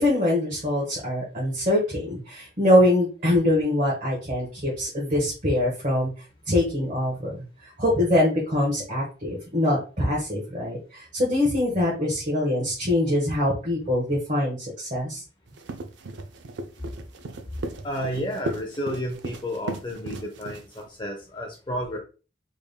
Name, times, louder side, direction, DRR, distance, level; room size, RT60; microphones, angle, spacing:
voice 1, 0.0-6.1 6.5-7.4 7.8-15.2, left 1 dB, 45° right, -5 dB, 1.3 m, -23 dB
sound 1, 15.5-20.9, right 2 dB, 85° right, 0.5 m, -36 dB
voice 2, 17.8-22.0, equal, 25° left, 1 dB, 0.5 m, -31 dB
3.6 x 3.5 x 2.2 m, 0.34 s
head